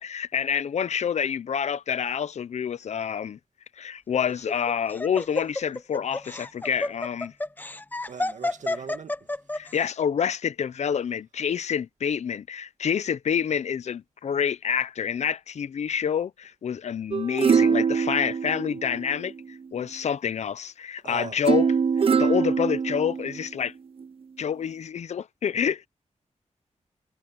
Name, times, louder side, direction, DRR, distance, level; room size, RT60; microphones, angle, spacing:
voice 1, 0.0-3.4 3.8-7.3 9.5-21.7 22.2-23.7 24.4-25.9, left 8 dB, 65° left, 0.6 m, -28 dB
Laughter, 4.3-9.7, left 2 dB, 15° left, 0.8 m, -30 dB
voice 2, 8.1-9.2 21.0-21.4, right 6 dB, 75° right, 1.8 m, -38 dB
sound 1, 17.1-19.4 21.5-23.5 24.0-24.1, right 6 dB, 50° right, 0.6 m, -23 dB
wide cardioid pair, 145°, 12 cm